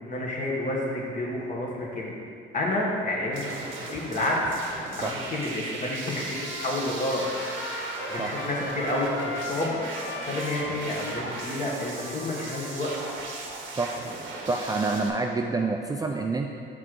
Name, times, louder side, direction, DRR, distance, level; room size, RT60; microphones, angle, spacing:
voice 1, 0.0-2.1 2.5-4.4 4.9-7.2 8.1-12.9, left 1 dB, 40° left, -3 dB, 1.4 m, -30 dB
sound 1, 3.3-15.1, right 3 dB, 80° right, 0.8 m, -37 dB
Trumpet, 6.3-13.4, left 3 dB, 75° left, 0.6 m, -38 dB
voice 2, 14.5-16.5, right 3 dB, 20° right, 2 dB, 0.3 m, -27 dB
6.0 x 3.8 x 4.6 m, 2.3 s
cardioid pair, 90°, 20 cm